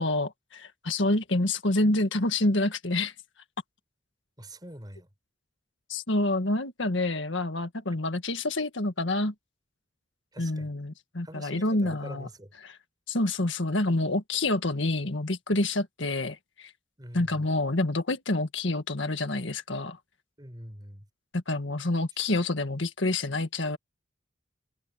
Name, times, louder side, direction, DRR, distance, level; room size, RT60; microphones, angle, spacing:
voice 1, 0.0-3.1 5.9-9.3 10.4-12.3 12.6-12.8 13.1-16.7 17.1-20.0 21.3-23.8, left 2 dB, 70° left, 1.8 m, -27 dB
voice 2, 4.4-5.1 10.3-10.7 11.2-12.5 17.0-17.4 20.4-21.1, right 1 dB, 20° right, 4.8 m, -44 dB
head